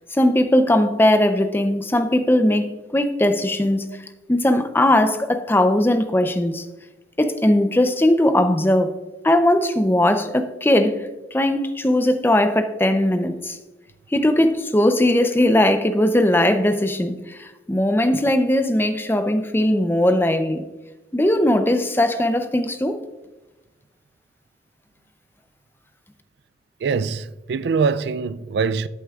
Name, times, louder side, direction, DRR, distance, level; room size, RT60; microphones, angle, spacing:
voice 1, 0.1-3.9 4.3-6.6 7.2-8.9 9.2-13.6 14.1-20.6 21.1-23.0, left 1 dB, 10° left, 0.5 m, -19 dB
voice 2, 26.8-28.9, right 5 dB, 65° right, 0.3 m, -23 dB
13.0 x 7.8 x 2.4 m
head